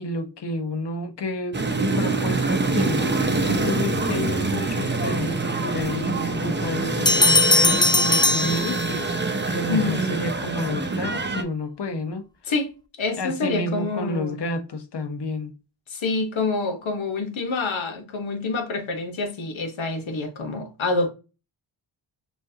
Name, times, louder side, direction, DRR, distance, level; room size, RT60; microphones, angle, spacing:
voice 1, 0.0-1.6 2.0-12.2 13.2-15.5, left 1 dB, 55° left, 1.0 m, -30 dB
sound 1, 1.5-11.4, right 3 dB, 25° right, 0.7 m, -25 dB
sound 2, 7.1-9.3, left 2 dB, 10° left, 0.4 m, -20 dB
voice 2, 9.7-10.2 12.4-12.7 13.0-14.4 15.9-21.1, left 3 dB, 70° left, 1.3 m, -27 dB
6.1 x 2.6 x 2.8 m
cardioid pair, 55°, 48 cm